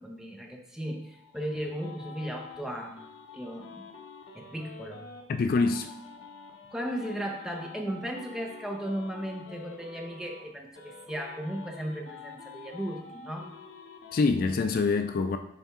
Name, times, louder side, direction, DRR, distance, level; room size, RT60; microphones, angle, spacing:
voice 1, 0.0-3.1 3.3-3.8 4.3-5.1 6.7-13.5, equal, 5° right, 1 dB, 0.7 m, -36 dB
sound 1, 0.9-5.2 5.6-10.4 10.7-14.2, left 5 dB, 75° left, 0.9 m, -48 dB
voice 2, 5.3-5.9 14.1-15.4, left 4 dB, 50° left, 8 dB, 0.3 m, -25 dB
7.0 x 3.5 x 4.3 m, 0.82 s
head